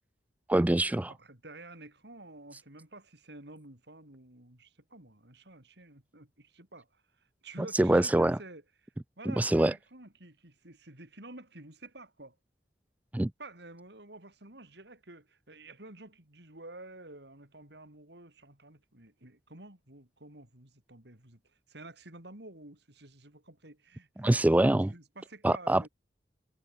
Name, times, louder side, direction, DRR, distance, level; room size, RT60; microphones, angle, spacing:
voice 1, 0.5-1.1 7.7-8.4 9.3-9.7 13.1-13.3 24.2-24.9 25.4-25.9, right 1 dB, 10° right, 0.3 m, -24 dB
voice 2, 1.1-7.0 7.4-12.4 13.4-21.4 21.7-24.4 24.8-25.9, right 2 dB, 65° right, 5.1 m, -50 dB
head